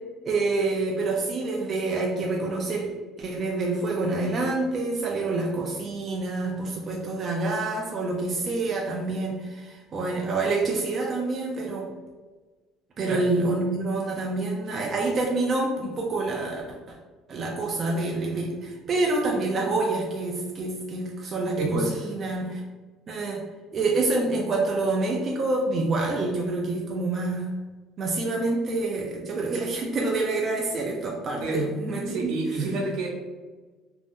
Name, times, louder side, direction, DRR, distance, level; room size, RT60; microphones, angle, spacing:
voice 1, 0.2-2.9 3.2-11.8 13.0-16.6 16.9-17.0 17.3-22.6 23.1-23.4 23.7-27.5 28.0-32.3 32.6-32.7, right 3 dB, 30° right, -2 dB, 0.3 m, -27 dB
voice 2, 21.6-22.1 31.4-31.7 32.1-33.1, right 2 dB, 75° right, -1 dB, 0.8 m, -29 dB
2.6 x 2.0 x 3.5 m, 1.3 s
cardioid pair, 170°, 0 cm